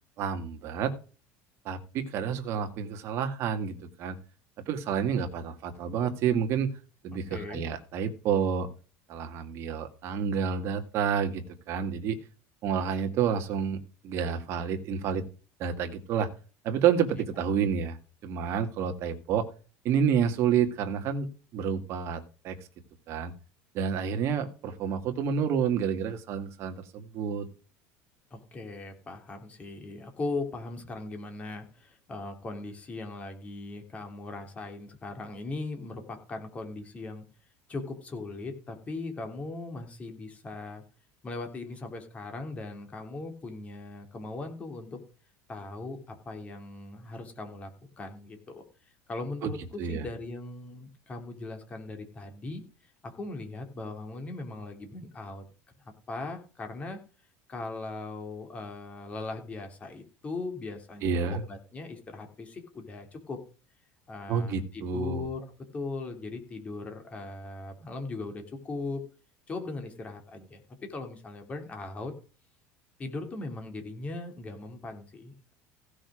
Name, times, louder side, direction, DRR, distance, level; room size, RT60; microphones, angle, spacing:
voice 1, 0.2-0.9 1.7-4.2 4.7-6.7 7.0-8.7 9.1-12.2 12.6-15.2 15.6-16.3 16.6-18.0 18.2-19.4 19.8-22.6 23.1-23.3 23.7-27.5 49.4-49.5 49.8-50.1 61.0-61.4 64.3-65.2, right 7 dB, 50° right, 6 dB, 2.1 m, -29 dB
voice 2, 7.3-7.7 28.3-37.2 37.7-40.8 41.2-45.0 45.5-47.7 48.0-48.6 49.1-52.6 53.0-55.4 56.1-57.0 57.5-63.4 64.1-65.4 65.7-69.0 69.5-70.6 70.9-72.1 73.0-75.5, left 3 dB, 20° left, 5 dB, 3.2 m, -39 dB
16.0 x 6.2 x 5.0 m, 0.36 s
cardioid pair, 140°, 6 cm